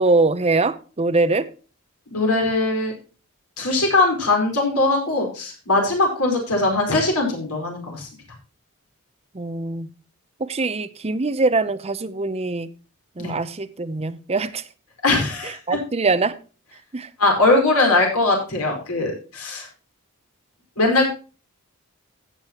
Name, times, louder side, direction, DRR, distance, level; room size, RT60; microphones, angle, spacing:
voice 1, 0.0-1.5 9.3-9.9 10.4-12.7 13.2-14.6 15.4-16.4 16.9-17.1, right 3 dB, 30° right, 0.6 m, -23 dB
voice 2, 2.1-2.9 3.6-8.1 13.2-13.3 15.0-15.6 17.2-19.7 20.8-21.1, left 2 dB, 85° left, 4.7 m, -20 dB
15.5 x 7.4 x 2.9 m
head